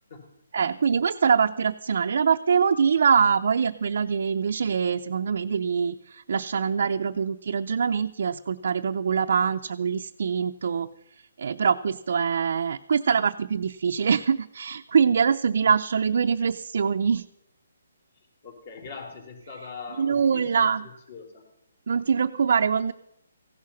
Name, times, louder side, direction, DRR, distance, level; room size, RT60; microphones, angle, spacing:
voice 1, 0.5-10.9 11.4-17.2 20.0-20.9 21.9-22.9, right 6 dB, 60° right, 4 dB, 0.5 m, -24 dB
voice 2, 18.1-21.4, left 5 dB, 45° left, 4 dB, 3.9 m, -42 dB
15.5 x 11.5 x 5.8 m, 0.82 s
hypercardioid pair, 165°, 0 cm